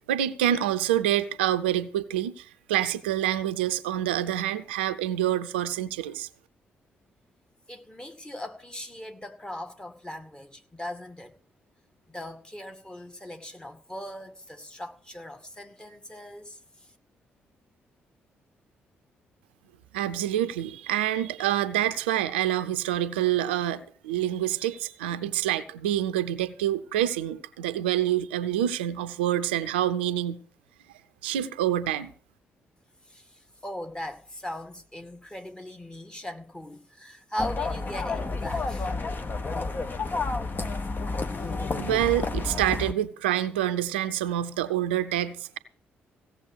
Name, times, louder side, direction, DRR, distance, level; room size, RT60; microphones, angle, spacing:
voice 1, 0.1-6.3 19.9-30.4 31.2-32.1 41.8-45.6, right 12 dB, 80° right, 0.6 m, -27 dB
voice 2, 7.7-11.3 12.1-16.9 33.1-38.9, left 1 dB, 15° left, 2.1 m, -39 dB
sound 1, 37.4-42.9, left 3 dB, 35° left, 1.5 m, -30 dB
16.5 x 7.2 x 6.4 m
figure-of-eight pair, 40°, 6 cm